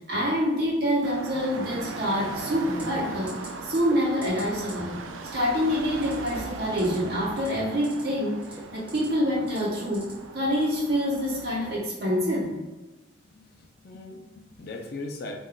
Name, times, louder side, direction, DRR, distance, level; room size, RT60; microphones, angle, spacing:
voice 1, 0.1-3.4 3.6-5.0 5.3-8.4 8.7-12.6, equal, 50° right, -4 dB, 0.9 m, -26 dB
sound 1, 1.0-11.8, right 3 dB, 75° right, 0.3 m, -39 dB
sound 2, 2.8-3.0 3.3-3.5 3.7-4.0 4.2-4.4 4.7-4.8 6.0-6.3 6.6-6.9 7.3-8.0 8.4-9.0 9.5-10.1 10.5-10.7, right 2 dB, 5° right, 0.5 m, -43 dB
voice 2, 13.2-15.3, left 2 dB, 50° left, 1 dB, 0.4 m, -39 dB
2.5 x 2.3 x 3.7 m, 1.1 s
head